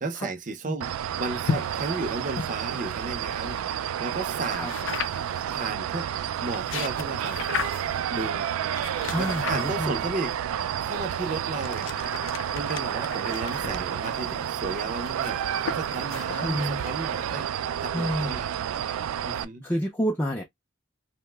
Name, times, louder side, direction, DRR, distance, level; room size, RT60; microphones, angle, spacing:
voice 1, 0.0-4.7 5.5-6.1 6.4-7.4 8.1-8.5 9.1-10.3 10.8-11.9 12.5-17.5 17.8-18.6 19.2-19.7, right 3 dB, 40° right, 0.5 m, -34 dB
sound 1, 0.8-19.4, right 9 dB, 90° right, 0.3 m, -30 dB
sound 2, 1.4-3.6 4.6-5.4 6.3-8.0 8.7-10.1 10.9-17.3, left 6 dB, 65° left, 0.5 m, -36 dB
voice 2, 9.1-10.0 13.6-13.9 16.3-16.8 17.9-18.4 19.3-20.4, equal, 10° left, 0.4 m, -29 dB
2.8 x 2.1 x 3.3 m
head